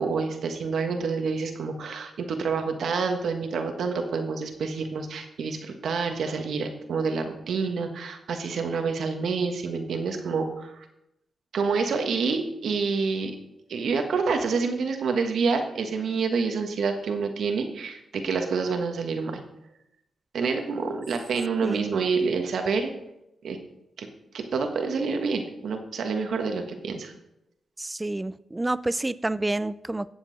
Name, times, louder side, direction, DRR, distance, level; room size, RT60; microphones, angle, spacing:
voice 1, 0.0-10.8 11.5-13.3 13.7-19.4 20.3-22.9 23.4-23.6 24.0-24.1 24.3-27.1, right 5 dB, 80° right, 5 dB, 1.4 m, -28 dB
voice 2, 27.8-30.1, right 2 dB, 20° right, 17 dB, 0.4 m, -29 dB
16.0 x 7.1 x 4.0 m, 0.87 s
cardioid pair, 65°, 0 cm